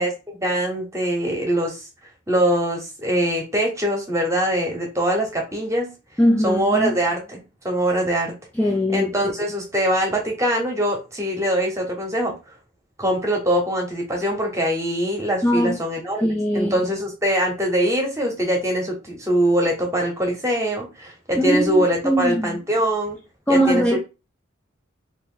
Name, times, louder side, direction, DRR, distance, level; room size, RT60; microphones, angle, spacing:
voice 1, 0.0-1.9 2.3-5.9 6.4-8.3 8.9-12.3 13.0-23.2 23.5-24.0, right 1 dB, 15° right, 0.9 m, -23 dB
voice 2, 6.2-6.9 8.6-9.1 15.4-15.8 16.2-16.8 21.3-22.6 23.5-24.0, equal, 5° left, 0.3 m, -20 dB
2.9 x 2.6 x 3.8 m
head